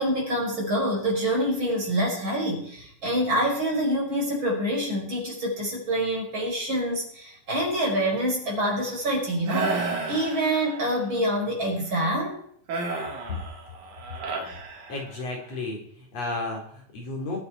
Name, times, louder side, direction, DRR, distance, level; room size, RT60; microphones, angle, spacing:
voice 1, 0.0-12.4, right 1 dB, 40° right, -2 dB, 5.5 m, -26 dB
sound 1, 9.5-11.0 12.7-15.4, right 3 dB, 75° right, 3.4 m, -32 dB
voice 2, 14.9-17.4, left 2 dB, 55° left, 0 dB, 4.2 m, -33 dB
22.5 x 8.6 x 4.6 m, 0.65 s
omnidirectional pair, 3.5 m